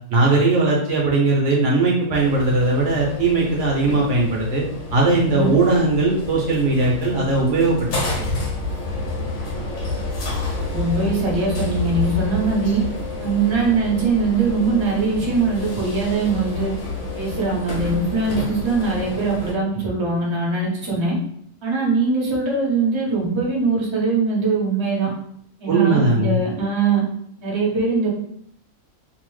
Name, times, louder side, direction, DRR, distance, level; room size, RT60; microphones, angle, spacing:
voice 1, 0.1-4.6 4.9-7.9 8.2-8.3 25.7-26.4, right 3 dB, 65° right, -2 dB, 0.7 m, -19 dB
sound 1, 2.1-19.5, left 3 dB, 60° left, 0.9 m, -29 dB
voice 2, 10.7-12.8 13.2-16.7 17.1-21.2 21.6-25.1 25.6-27.0 27.4-28.1, right 4 dB, 35° right, -4 dB, 0.4 m, -21 dB
2.6 x 2.0 x 3.1 m, 0.68 s
omnidirectional pair, 1.6 m